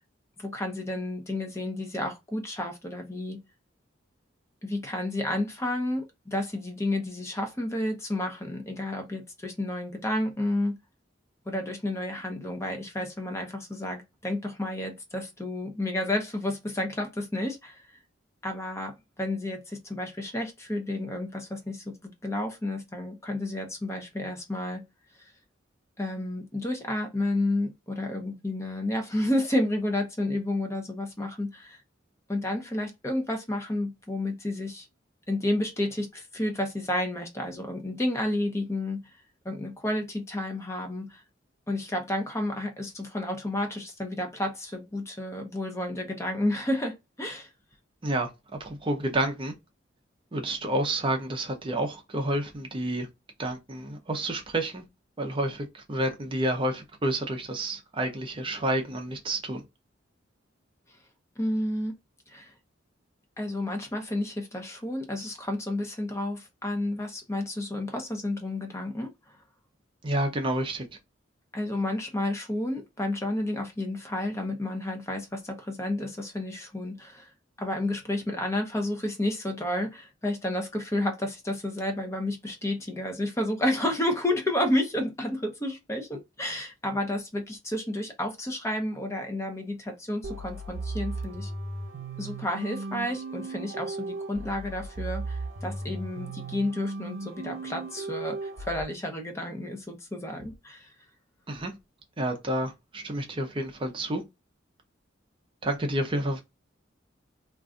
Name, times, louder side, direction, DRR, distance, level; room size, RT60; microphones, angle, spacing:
voice 1, 0.4-3.4 4.6-10.7 11.5-17.8 18.4-24.8 26.0-31.8 32.3-34.9 35.3-39.0 39.4-41.2 41.7-47.5 61.4-61.9 62.3-62.5 63.4-69.1 71.5-77.3 77.6-91.5 92.2-100.9, left 1 dB, 15° left, 0.6 m, -31 dB
voice 2, 48.6-49.5 50.3-53.1 53.4-54.8 55.2-59.6 70.0-70.9 101.5-101.8 102.2-104.2 105.6-106.4, right 1 dB, 25° right, 0.5 m, -29 dB
sound 1, 90.2-98.8, right 2 dB, 70° right, 0.7 m, -36 dB
2.5 x 2.2 x 3.6 m
head